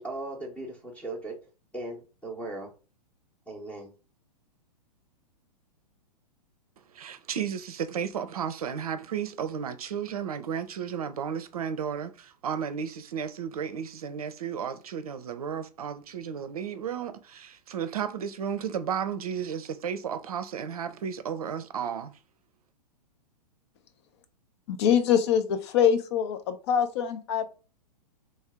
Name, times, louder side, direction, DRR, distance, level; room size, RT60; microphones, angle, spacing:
voice 1, 0.0-1.4 1.7-2.7 3.5-3.9, right 2 dB, 5° left, 0.8 m, -37 dB
voice 2, 6.9-22.2, right 8 dB, 60° right, 0.6 m, -33 dB
voice 3, 24.7-27.5, left 8 dB, 40° left, 0.6 m, -24 dB
3.3 x 2.7 x 3.4 m
figure-of-eight pair, 110°, 21 cm